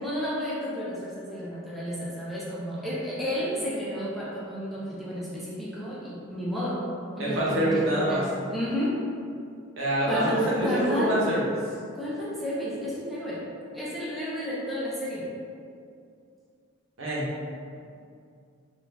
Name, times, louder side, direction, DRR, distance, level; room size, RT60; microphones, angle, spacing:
voice 1, 0.0-6.8 7.2-8.9 10.1-11.1 11.9-13.4 13.7-15.3, equal, ahead, -8 dB, 0.6 m, -31 dB
voice 2, 7.2-8.2 9.8-11.4 17.0-17.3, right 1 dB, 85° right, -6 dB, 0.9 m, -25 dB
3.7 x 2.5 x 3.3 m, 2.3 s
head